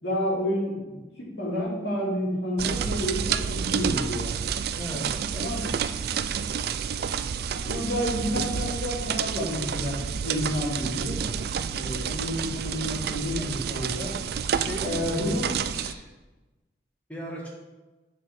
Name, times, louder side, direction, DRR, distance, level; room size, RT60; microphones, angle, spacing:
voice 1, 0.0-4.3 5.3-5.7 7.6-11.2 11.7-14.1 14.8-15.5, equal, 65° left, -5 dB, 2.6 m, -30 dB
sound 1, 2.6-15.9, right 7 dB, 55° right, 0.3 m, -29 dB
voice 2, 4.7-5.1 14.5-16.1 17.1-17.5, right 1 dB, 10° left, -3 dB, 1.6 m, -37 dB
6.8 x 4.7 x 5.9 m, 1.1 s
head